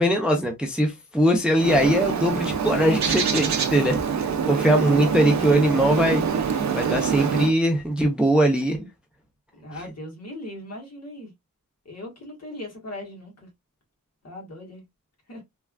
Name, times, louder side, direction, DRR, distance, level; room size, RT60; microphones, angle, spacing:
voice 1, 0.0-8.9, right 1 dB, 5° right, 0.5 m, -21 dB
Bird, 1.6-7.5, right 6 dB, 55° right, 0.6 m, -25 dB
voice 2, 4.8-5.4 9.5-11.3 11.8-13.5 14.2-14.8 15.3-15.4, left 1 dB, 50° left, 1.3 m, -39 dB
3.3 x 2.3 x 2.2 m
wide cardioid pair, 125°, 34 cm